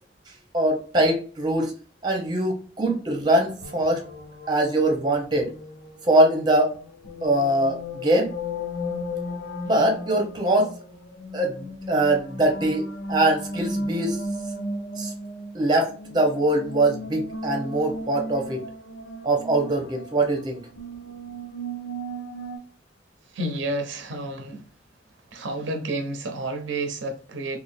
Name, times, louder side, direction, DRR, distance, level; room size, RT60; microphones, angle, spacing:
voice 1, 0.5-1.7 2.0-4.0 4.5-5.5 6.1-6.8 7.2-8.3 9.6-10.7 11.3-14.2 15.0-15.1 15.5-18.6 19.2-20.6, right 1 dB, 25° right, 0.9 m, -22 dB
sound 1, 3.4-22.6, left 1 dB, 90° left, 0.7 m, -35 dB
voice 2, 23.3-24.6 25.3-27.6, right 2 dB, 85° right, 0.6 m, -30 dB
3.6 x 2.4 x 2.6 m
head